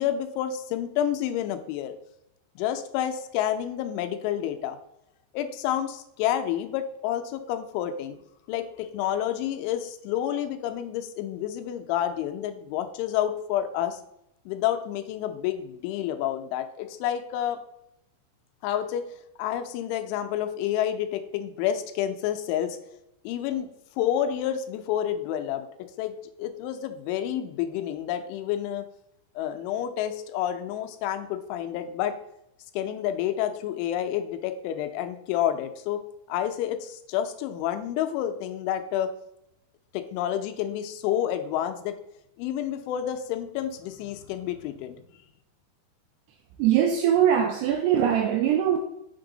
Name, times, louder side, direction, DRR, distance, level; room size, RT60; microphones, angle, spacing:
voice 1, 0.0-1.9 2.6-4.8 5.3-8.2 8.5-14.0 14.5-17.6 18.6-19.1 19.4-22.8 23.2-23.7 24.0-28.9 29.4-32.1 32.7-36.0 36.3-39.1 39.9-42.0 42.4-45.0, left 11 dB, 90° left, 3.1 m, -29 dB
voice 2, 46.6-48.8, right 9 dB, 85° right, 2.4 m, -22 dB
6.9 x 6.1 x 3.9 m
omnidirectional pair, 5.4 m